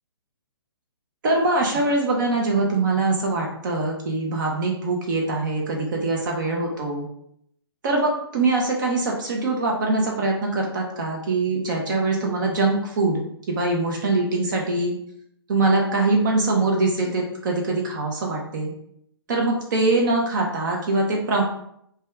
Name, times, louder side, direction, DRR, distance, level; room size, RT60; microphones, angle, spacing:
voice 1, 1.2-7.1 7.8-13.2 13.5-14.9 15.5-18.7 19.3-21.4, right 2 dB, 45° right, 0 dB, 0.6 m, -23 dB
2.6 x 2.2 x 3.3 m, 0.73 s
hypercardioid pair, 140°, 14 cm